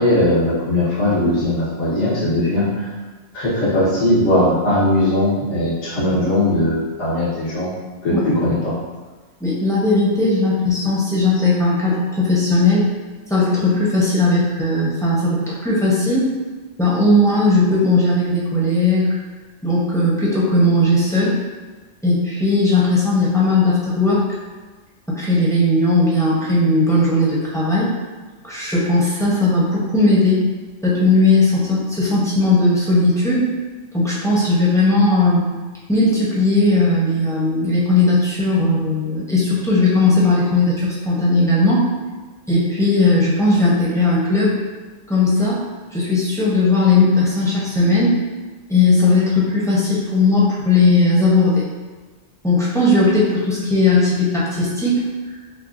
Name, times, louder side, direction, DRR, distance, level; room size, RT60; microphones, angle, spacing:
voice 1, 0.0-2.9 3.3-7.7 8.0-8.7, left 1 dB, 70° left, -10 dB, 1.4 m, -19 dB
voice 2, 9.4-12.8 13.3-16.3 16.8-19.2 19.6-21.4 22.0-24.2 25.1-27.9 28.4-30.4 30.8-33.5 33.9-35.4 35.9-41.9 42.5-44.5 45.1-45.6 45.9-48.2 48.7-51.6 52.4-55.0, left 2 dB, 5° left, -7 dB, 0.7 m, -17 dB
6.1 x 2.3 x 2.5 m, 1.3 s
omnidirectional pair, 1.3 m